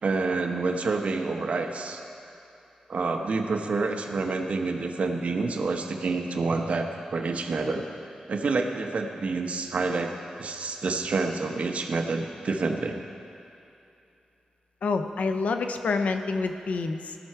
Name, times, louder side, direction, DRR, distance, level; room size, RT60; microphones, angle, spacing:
voice 1, 0.0-2.0 2.9-7.9 8.3-13.0, right 3 dB, 60° right, 4 dB, 0.8 m, -28 dB
voice 2, 14.8-17.2, left 4 dB, 75° left, 7 dB, 0.6 m, -27 dB
17.0 x 5.9 x 4.6 m, 2.8 s
wide cardioid pair, 90°, 2 cm